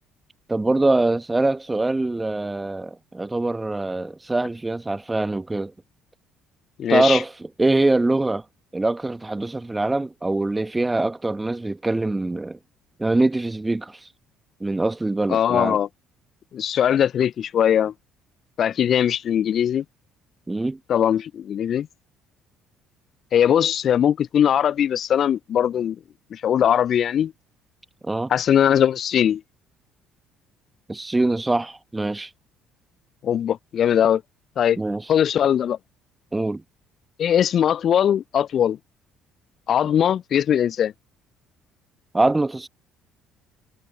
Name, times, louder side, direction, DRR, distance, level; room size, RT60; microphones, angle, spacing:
voice 1, 0.5-5.7 6.9-8.4 8.7-12.6 13.0-14.1 14.6-15.8 20.5-20.8 28.0-28.3 30.9-32.3 34.8-35.1 36.3-36.6 42.1-42.7, right 2 dB, 15° right, 1.3 m, -23 dB
voice 2, 6.8-7.2 15.3-15.9 16.5-17.9 18.6-19.8 20.9-21.9 23.3-26.0 26.3-27.3 28.3-29.4 33.2-34.2 34.6-34.8 35.1-35.8 37.2-38.8 39.7-40.9, left 9 dB, 50° left, 0.5 m, -20 dB
figure-of-eight pair, 50°, 0 cm